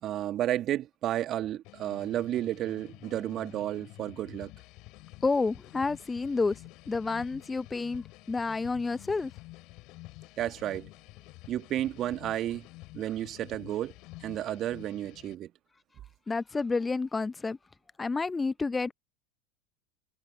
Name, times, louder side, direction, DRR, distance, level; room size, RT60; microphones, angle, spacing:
voice 1, 0.0-4.5 10.4-10.9 11.5-12.7 12.9-13.9 14.2-15.5, right 12 dB, 40° right, 1.8 m, -32 dB
sound 1, 1.6-15.3, left 22 dB, 50° left, 3.9 m, -50 dB
voice 2, 5.2-6.6 6.9-9.3 16.3-17.6 18.0-18.9, left 4 dB, 15° left, 0.7 m, -29 dB
figure-of-eight pair, 80°, 0 cm